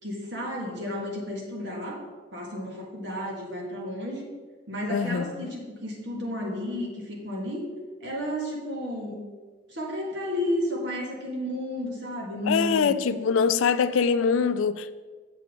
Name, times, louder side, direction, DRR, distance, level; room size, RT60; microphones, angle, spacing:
voice 1, 0.0-2.0 2.3-4.2 4.7-7.7 8.0-9.3 9.7-12.9, left 1 dB, 65° right, 1.6 m, -32 dB
voice 2, 4.9-5.5 12.5-14.9, left 6 dB, 90° left, 0.4 m, -24 dB
6.9 x 6.9 x 3.7 m
head